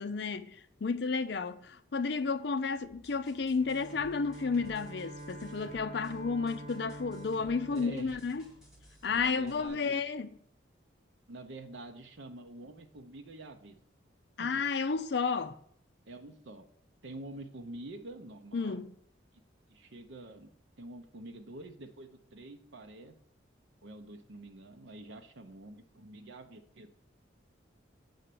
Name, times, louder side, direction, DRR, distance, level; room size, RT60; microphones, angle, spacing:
voice 1, 0.0-8.5 9.0-10.3 14.4-15.5 18.5-18.9, left 4 dB, 60° left, 0.5 m, -32 dB
sound 1, 2.8-9.7, left 1 dB, 5° right, 2.3 m, -58 dB
Bowed string instrument, 3.5-9.2, right 1 dB, 35° right, 1.4 m, -47 dB
voice 2, 7.7-8.2 9.2-9.9 11.3-13.8 14.4-14.5 16.1-16.7 17.0-18.8 19.7-20.5 20.8-23.1 23.8-26.9, right 2 dB, 75° right, 0.7 m, -47 dB
7.8 x 4.3 x 6.8 m
head